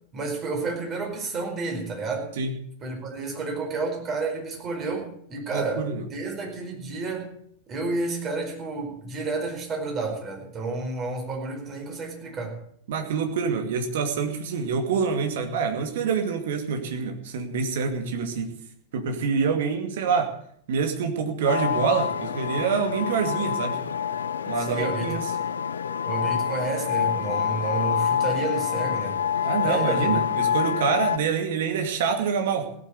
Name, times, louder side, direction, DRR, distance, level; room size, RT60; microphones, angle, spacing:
voice 1, 0.1-2.3 2.8-7.3 7.7-12.6 24.6-25.1 26.1-29.2 29.6-30.2, right 3 dB, 30° right, 2 dB, 4.8 m, -30 dB
voice 2, 5.5-6.0 12.9-18.6 18.9-20.3 20.7-23.8 24.5-25.3 29.4-32.7, right 6 dB, 55° right, 5 dB, 2.4 m, -26 dB
sound 1, 21.5-31.2, left 8 dB, 70° left, 0.6 m, -26 dB
17.0 x 8.6 x 8.2 m, 0.66 s
figure-of-eight pair, 90°, 0 cm